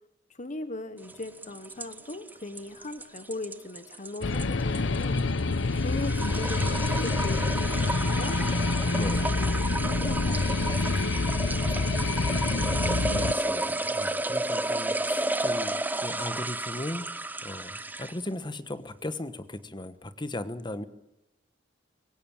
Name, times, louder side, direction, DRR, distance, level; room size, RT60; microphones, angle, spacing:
voice 1, 0.3-8.4 8.9-12.5, left 2 dB, 40° left, 10 dB, 1.2 m, -40 dB
sound 1, 1.1-18.3, right 2 dB, 10° right, 0.8 m, -32 dB
sound 2, 4.2-13.3, left 3 dB, 90° left, 0.8 m, -27 dB
voice 2, 8.9-9.3 13.2-15.7 16.0-17.1 17.4-20.8, left 1 dB, 25° left, 12 dB, 1.2 m, -37 dB
24.5 x 16.5 x 8.9 m, 0.84 s
head